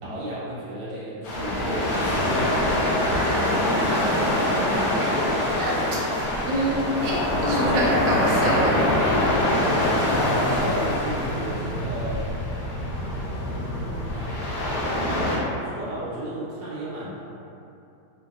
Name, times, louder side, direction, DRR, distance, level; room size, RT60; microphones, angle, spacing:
voice 1, 0.0-3.7 10.2-12.3 13.5-14.4 15.0-17.2, right 1 dB, 65° right, -9 dB, 1.4 m, -34 dB
sound 1, 1.2-15.4, left 1 dB, 75° left, 1.3 m, -24 dB
voice 2, 3.1-8.9, right 1 dB, 90° right, -5 dB, 1.5 m, -28 dB
3.3 x 2.7 x 2.3 m, 2.6 s
omnidirectional pair, 2.3 m